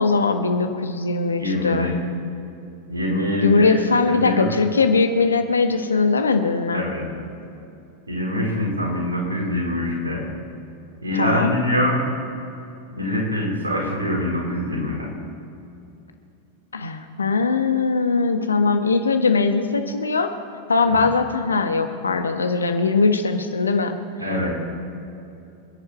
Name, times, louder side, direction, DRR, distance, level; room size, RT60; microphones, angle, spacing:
voice 1, 0.0-1.9 3.4-6.9 11.1-11.6 16.7-20.3 20.7-23.9, left 4 dB, 75° left, 7 dB, 1.4 m, -20 dB
voice 2, 1.4-2.0 2.9-4.5 6.7-7.1 8.1-10.3 11.0-12.0 13.0-15.1 24.2-24.5, left 1 dB, 80° right, -3 dB, 4.5 m, -24 dB
27.0 x 10.5 x 4.3 m, 2.7 s
figure-of-eight pair, 90°, 0 cm